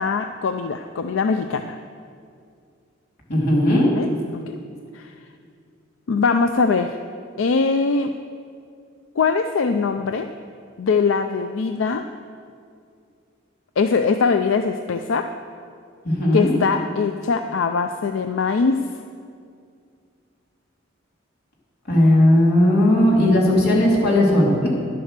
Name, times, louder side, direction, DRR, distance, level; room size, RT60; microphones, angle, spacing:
voice 1, 0.0-1.8 3.9-4.1 4.3-4.5 4.9-5.1 6.1-7.0 7.4-8.1 9.2-10.3 10.8-12.0 13.8-15.3 16.3-18.8, left 4 dB, 80° left, 8 dB, 0.4 m, -21 dB
voice 2, 3.3-3.9 16.0-16.5 21.9-24.7, left 1 dB, 55° left, -4 dB, 2.7 m, -16 dB
11.0 x 7.7 x 6.6 m, 2.3 s
head